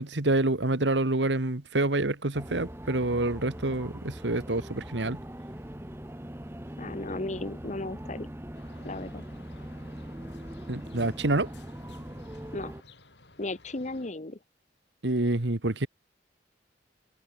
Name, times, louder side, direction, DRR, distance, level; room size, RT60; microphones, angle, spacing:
voice 1, 0.0-5.2 10.7-11.5 15.0-15.9, right 2 dB, 85° right, 1.8 m, -27 dB
sound 1, 2.3-12.8, equal, 15° right, 1.3 m, -41 dB
voice 2, 6.8-8.3 8.8-9.4 12.5-12.7 13.4-14.4, left 2 dB, 40° left, 1.2 m, -35 dB
sound 2, 8.5-14.1, left 3 dB, 75° left, 6.4 m, -55 dB
head